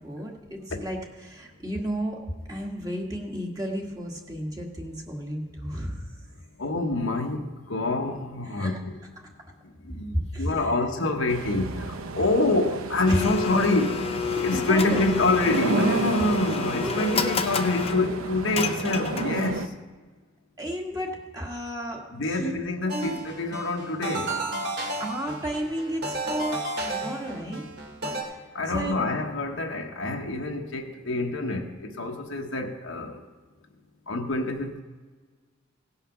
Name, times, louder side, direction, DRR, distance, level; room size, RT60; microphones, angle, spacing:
voice 1, 0.0-2.2 2.5-6.1 8.5-8.8 9.2-9.3 10.1-10.7 13.1-13.3 14.3-15.1 16.8-17.3 20.6-22.5 22.9-23.2 25.0-27.6 28.1-28.2 28.7-29.0, equal, 20° right, 0 dB, 1.6 m, -33 dB
voice 2, 6.6-7.4 7.7-8.7 9.9-11.7 12.1-14.0 14.4-19.5 22.1-24.3 28.5-31.7 32.0-33.1 34.1-34.8, left 2 dB, 65° left, 3 dB, 1.1 m, -26 dB
sound 1, 11.3-19.7, right 3 dB, 85° right, 0.8 m, -32 dB
Domestic sounds home sounds, 13.1-19.6, left 6 dB, 30° left, 0.6 m, -30 dB
sound 2, 22.9-28.2, right 2 dB, 55° right, 2.6 m, -33 dB
17.0 x 5.7 x 5.8 m, 1.4 s
head